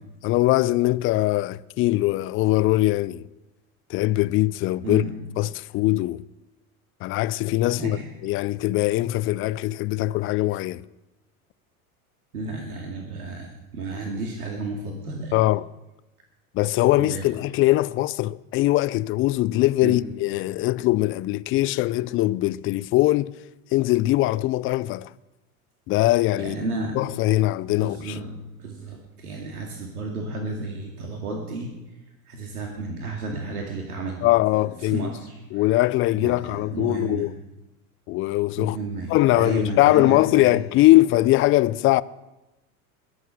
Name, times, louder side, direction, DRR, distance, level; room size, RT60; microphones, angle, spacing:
voice 1, 0.2-3.3 3.9-5.0 5.4-6.2 7.0-10.8 15.3-15.7 16.5-23.3 23.7-25.1 25.9-26.5 27.0-28.2 34.2-35.1 35.5-37.3 38.1-38.8 39.1-42.0, left 17 dB, 30° left, 0.4 m, -21 dB
voice 2, 7.8-8.1 12.3-15.4 17.0-17.2 19.8-20.0 26.4-27.0 27.7-28.3 28.6-31.7 32.3-34.2 34.8-35.7 36.1-37.3 38.6-40.6, right 2 dB, 85° right, 2.4 m, -32 dB
21.5 x 8.0 x 6.4 m
hypercardioid pair, 90°, 44 cm